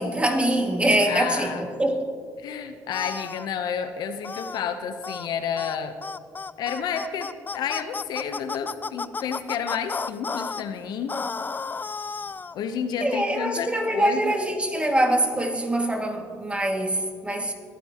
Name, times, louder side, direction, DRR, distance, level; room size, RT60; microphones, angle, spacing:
voice 1, 0.0-2.1 13.0-17.5, right 1 dB, 15° right, 2 dB, 2.1 m, -24 dB
voice 2, 1.1-1.6 2.4-6.0 6.6-11.1 12.5-14.3, left 7 dB, 70° left, 9 dB, 0.8 m, -30 dB
sound 1, 2.9-3.5 4.2-4.6 5.0-5.3 5.6-5.8 6.0-10.6 11.1-12.6, left 4 dB, 25° left, 0.4 m, -32 dB
22.0 x 10.5 x 3.0 m, 2.1 s
supercardioid pair, 60°, 7 cm